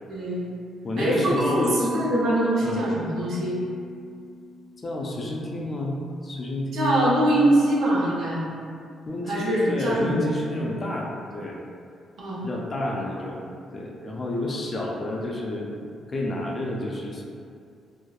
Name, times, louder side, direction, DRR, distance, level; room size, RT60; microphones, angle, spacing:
voice 1, 0.1-0.4 1.0-3.6 6.7-8.4 9.3-10.3 12.2-12.4, right 1 dB, 70° right, -5 dB, 0.6 m, -23 dB
voice 2, 0.8-1.9 2.6-2.9 4.8-7.1 9.1-11.6 12.4-13.4 13.7-15.8 16.1-17.2, left 1 dB, 35° left, -2 dB, 0.4 m, -29 dB
Mallet percussion, 1.4-5.4, equal, 15° right, 0.5 m, -37 dB
2.7 x 2.0 x 2.2 m, 2.3 s
cardioid pair, 90°, 0 cm